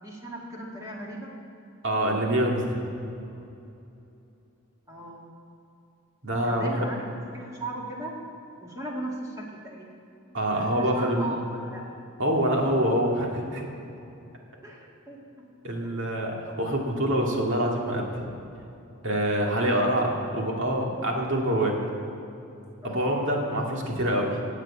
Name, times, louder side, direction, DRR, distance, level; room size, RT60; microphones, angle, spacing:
voice 1, 0.0-1.3 4.9-5.2 6.4-7.0 7.3-8.2 8.6-9.9 10.5-11.9 14.6-15.4 15.8-16.0 19.4-19.9 22.8-23.1, right 1 dB, 15° right, -3 dB, 2.0 m, -37 dB
voice 2, 1.8-2.8 6.2-6.9 10.3-11.3 12.2-13.7 15.6-18.2 19.0-21.8 22.8-24.6, right 1 dB, 55° right, -1 dB, 2.3 m, -26 dB
15.0 x 8.3 x 8.3 m, 2.8 s
head